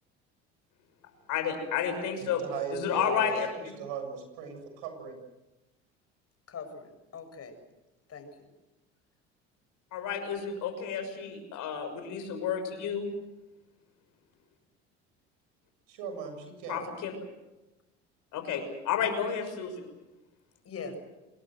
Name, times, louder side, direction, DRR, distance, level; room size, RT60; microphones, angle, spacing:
voice 1, 1.3-2.4 2.7-3.5 9.9-13.1 16.7-17.1 18.3-19.9, left 7 dB, 60° left, 7 dB, 6.3 m, -31 dB
voice 2, 2.2-3.3 3.8-5.2 15.9-16.8, right 6 dB, 70° right, 6 dB, 7.2 m, -38 dB
voice 3, 6.5-7.5 8.1-8.5 20.6-21.0, left 5 dB, 45° left, 7 dB, 7.2 m, -42 dB
27.5 x 21.0 x 7.8 m, 1.0 s
hypercardioid pair, 65°, 34 cm